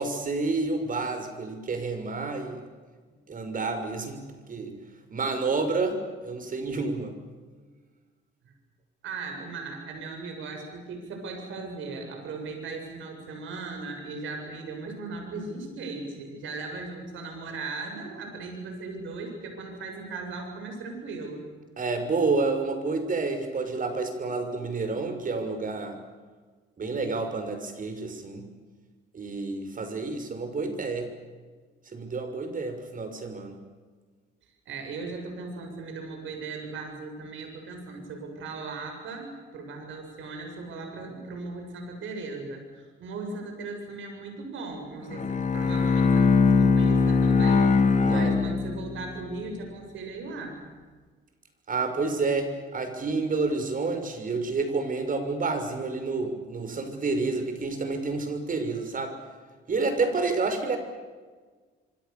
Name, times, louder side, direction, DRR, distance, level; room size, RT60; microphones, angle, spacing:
voice 1, 0.0-2.6 3.3-4.2 4.5-4.7 5.1-7.2 21.8-26.0 26.8-28.4 29.1-31.1 31.9-33.6 48.0-48.4 51.7-59.2 59.7-60.8, right 3 dB, 45° right, 7 dB, 6.1 m, -29 dB
voice 2, 9.0-21.5 34.7-47.7 48.1-50.6, right 3 dB, 75° right, 4 dB, 7.5 m, -38 dB
Bowed string instrument, 45.0-49.1, left 4 dB, 40° left, 3.1 m, -21 dB
26.5 x 25.5 x 7.0 m, 1.4 s
cardioid pair, 90°, 20 cm